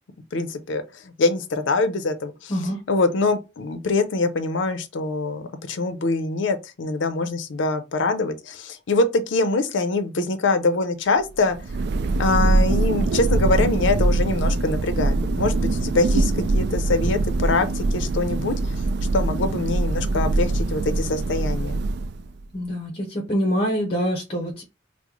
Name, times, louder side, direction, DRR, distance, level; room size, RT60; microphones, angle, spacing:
voice 1, 0.3-2.5 2.9-11.6 12.2-18.8 19.1-21.8, left 3 dB, 70° left, 0.5 m, -24 dB
voice 2, 2.5-2.8 22.5-24.6, equal, 30° left, 0.6 m, -25 dB
Thunder, 11.4-22.4, right 2 dB, 60° right, 0.3 m, -23 dB
3.0 x 2.0 x 3.6 m
head